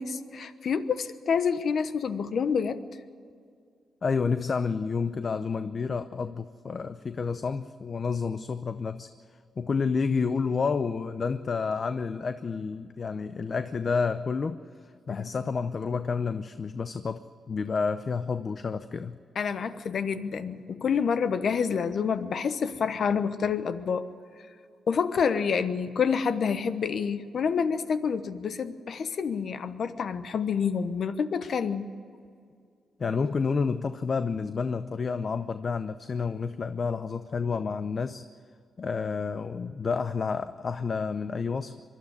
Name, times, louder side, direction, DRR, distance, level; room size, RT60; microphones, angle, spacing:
voice 1, 0.0-2.8 15.1-15.3 19.3-24.1 24.9-31.9, left 6 dB, 65° left, 12 dB, 1.0 m, -28 dB
voice 2, 4.0-9.1 9.6-14.6 15.1-19.2 33.0-38.3 38.8-41.8, left 5 dB, 50° left, 11 dB, 0.7 m, -29 dB
23.0 x 12.5 x 9.7 m, 2.2 s
cardioid pair, 75°, 0 cm